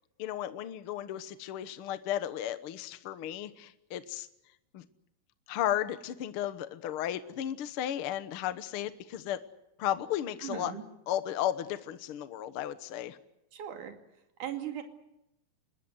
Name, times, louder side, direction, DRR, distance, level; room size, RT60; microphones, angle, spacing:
voice 1, 0.2-4.3 4.7-4.8 5.5-9.4 9.8-10.7 11.1-13.2, left 11 dB, 90° left, 12 dB, 1.2 m, -34 dB
voice 2, 10.4-10.8 13.5-13.9 14.4-14.8, right 10 dB, 60° right, 5 dB, 3.8 m, -38 dB
26.5 x 21.0 x 8.1 m, 0.86 s
omnidirectional pair, 4.2 m